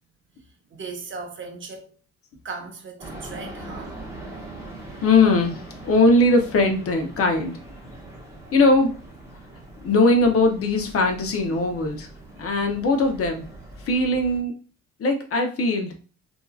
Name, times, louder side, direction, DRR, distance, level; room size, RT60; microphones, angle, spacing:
voice 1, 0.7-1.9 2.4-4.0, right 4 dB, 40° right, 0.7 m, -37 dB
sound 1, 3.0-14.4, right 2 dB, 10° right, 0.8 m, -41 dB
voice 2, 5.0-7.6 8.5-8.9 9.8-12.1 12.4-13.4 13.9-14.5 15.0-15.9, left 2 dB, 50° left, 0.7 m, -20 dB
2.7 x 2.4 x 2.3 m
cardioid pair, 90°, 30 cm